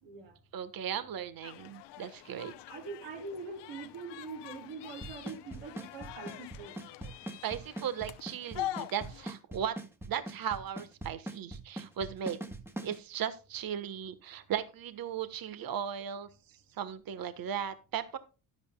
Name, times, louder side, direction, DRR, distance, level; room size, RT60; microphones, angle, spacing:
voice 1, 0.0-0.3 0.9-1.0 2.7-6.7, right 4 dB, 60° right, 0 dB, 4.2 m, -43 dB
voice 2, 0.5-2.5 7.4-9.8 10.1-12.4 12.8-18.2, right 8 dB, 45° right, 12 dB, 1.4 m, -37 dB
sound 1, 1.4-9.3, left 14 dB, 60° left, 0.9 m, -44 dB
Drum kit / Snare drum / Bass drum, 5.0-13.0, right 2 dB, 5° right, 1.7 m, -40 dB
13.5 x 10.5 x 2.3 m, 0.30 s
hypercardioid pair, 70°, 47 cm